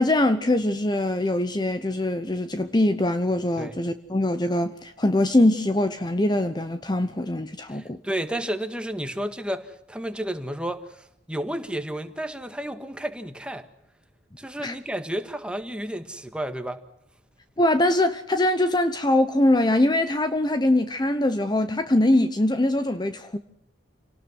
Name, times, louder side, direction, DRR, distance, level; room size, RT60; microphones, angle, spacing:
voice 1, 0.0-8.0 14.6-14.7 17.6-23.4, left 1 dB, 25° left, 0.9 m, -22 dB
voice 2, 7.7-13.7 14.4-16.8, right 1 dB, 5° right, 1.8 m, -32 dB
28.5 x 18.5 x 6.4 m
head